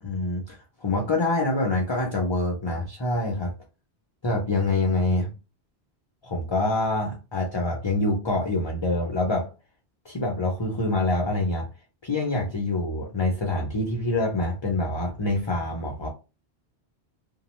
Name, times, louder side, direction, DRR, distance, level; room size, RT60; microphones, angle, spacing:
voice 1, 0.0-3.5 4.2-5.3 6.2-9.5 10.1-11.7 12.0-16.1, left 2 dB, 35° left, 0 dB, 0.4 m, -26 dB
2.8 x 2.2 x 3.0 m, 0.30 s
omnidirectional pair, 1.1 m